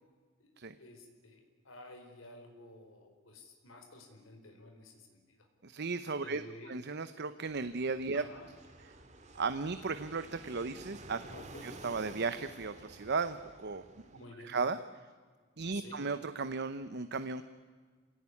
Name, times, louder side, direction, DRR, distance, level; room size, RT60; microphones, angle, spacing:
voice 1, 0.4-5.5 6.2-6.8 8.1-8.5 11.3-11.7 14.0-14.6 15.7-16.0, left 1 dB, 70° left, 4 dB, 4.6 m, -53 dB
voice 2, 5.6-8.2 9.3-11.2 11.6-13.8 14.4-15.1 15.6-17.4, right 4 dB, 55° right, 11 dB, 0.9 m, -35 dB
Fixed-wing aircraft airplane, 7.4-14.2, right 2 dB, 35° right, 2.2 m, -52 dB
27.0 x 17.5 x 9.8 m, 1.5 s
head